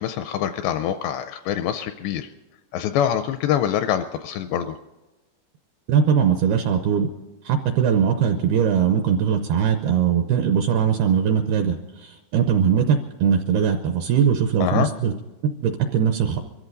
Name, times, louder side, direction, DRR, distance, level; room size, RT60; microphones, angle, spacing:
voice 1, 0.0-2.3 2.7-4.8 14.6-14.9, left 10 dB, 85° left, 9 dB, 2.5 m, -25 dB
voice 2, 5.9-7.1 7.5-11.8 12.3-15.1 15.6-16.4, right 7 dB, 80° right, 6 dB, 2.3 m, -20 dB
23.5 x 14.0 x 4.0 m, 1.1 s
omnidirectional pair, 5.5 m